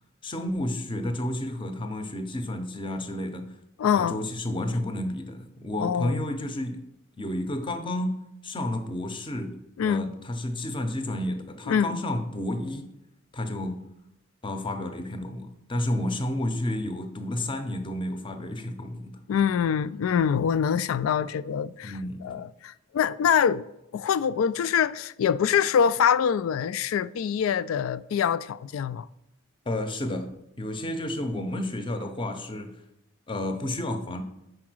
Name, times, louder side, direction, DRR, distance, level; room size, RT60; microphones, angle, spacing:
voice 1, 0.2-3.5 3.9-6.8 7.2-12.9 13.3-13.9 14.4-19.2 21.8-22.3 29.7-30.3 30.6-32.8 33.3-34.2, left 1 dB, 25° left, 0.6 m, -31 dB
voice 2, 3.8-4.2 5.8-6.3 9.8-10.1 11.7-12.0 19.3-21.9 22.2-23.6 23.9-29.1, left 8 dB, 90° left, 0.3 m, -24 dB
4.9 x 4.8 x 6.1 m
head